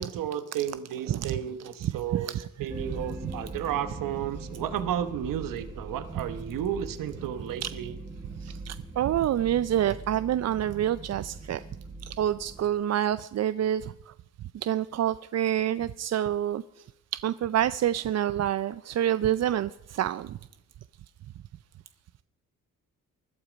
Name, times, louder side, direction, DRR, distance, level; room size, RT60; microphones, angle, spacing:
voice 1, 0.0-8.0, right 10 dB, 85° right, 11 dB, 1.1 m, -33 dB
voice 2, 2.1-2.4 7.6-7.7 8.4-11.6 12.1-13.9 14.6-16.6 17.2-20.4, right 11 dB, 55° right, 15 dB, 0.5 m, -27 dB
sound 1, 2.7-12.7, right 2 dB, 25° right, 3.1 m, -41 dB
20.0 x 12.0 x 5.1 m, 0.83 s
cardioid pair, 85°, 32 cm